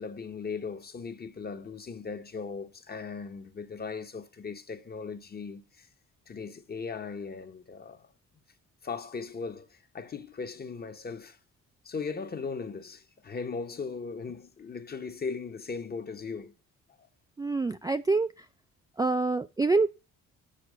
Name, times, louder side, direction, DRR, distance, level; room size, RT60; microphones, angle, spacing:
voice 1, 0.0-5.9 6.3-8.1 8.8-11.4 11.8-16.5 17.0-17.1, left 5 dB, 30° left, 1.0 m, -38 dB
voice 2, 17.4-18.3 19.0-19.9, right 3 dB, 10° right, 0.4 m, -26 dB
6.7 x 4.9 x 6.4 m
cardioid pair, 90°, 30 cm